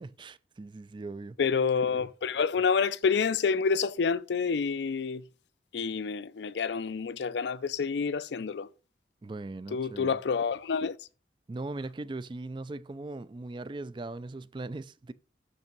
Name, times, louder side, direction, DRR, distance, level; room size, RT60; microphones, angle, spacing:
voice 1, 0.0-1.4 9.2-10.2 11.5-15.1, right 2 dB, 25° right, 0.3 m, -39 dB
voice 2, 1.4-5.2 5.7-8.7 9.7-11.0, left 5 dB, 70° left, 0.4 m, -28 dB
6.6 x 5.4 x 5.2 m
head